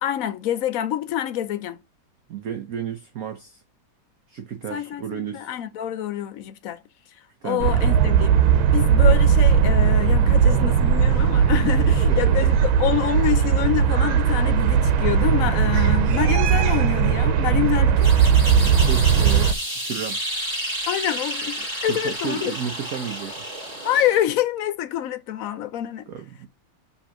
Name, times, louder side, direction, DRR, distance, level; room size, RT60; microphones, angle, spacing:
voice 1, 0.0-1.8 4.7-6.8 7.4-8.4 8.7-18.1 20.9-22.5 23.8-26.1, left 11 dB, 70° left, 0.8 m, -26 dB
voice 2, 2.3-3.6 4.3-5.6 7.4-7.7 12.1-12.5 18.5-20.2 21.8-23.5 26.1-26.5, right 8 dB, 60° right, 1.0 m, -33 dB
sound 1, 7.6-19.5, right 7 dB, 90° right, 1.6 m, -18 dB
sound 2, 18.0-24.4, equal, 15° right, 2.3 m, -31 dB
5.5 x 3.6 x 5.7 m
omnidirectional pair, 2.2 m